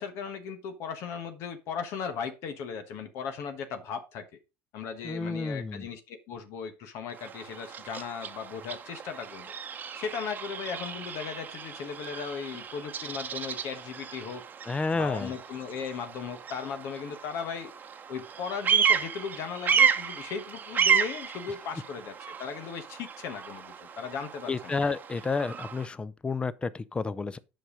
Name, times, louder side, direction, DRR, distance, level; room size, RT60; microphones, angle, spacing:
voice 1, 0.0-4.4 4.7-9.5 9.9-14.4 14.9-17.7 18.1-24.8, left 6 dB, 60° left, 1.3 m, -37 dB
voice 2, 5.0-5.9 14.7-15.3 24.5-27.4, left 4 dB, 20° left, 0.7 m, -30 dB
Bird vocalization bird call bird song, 7.1-25.9, right 7 dB, 35° right, 0.9 m, -32 dB
7.7 x 5.6 x 5.0 m
supercardioid pair, 90°, 5 cm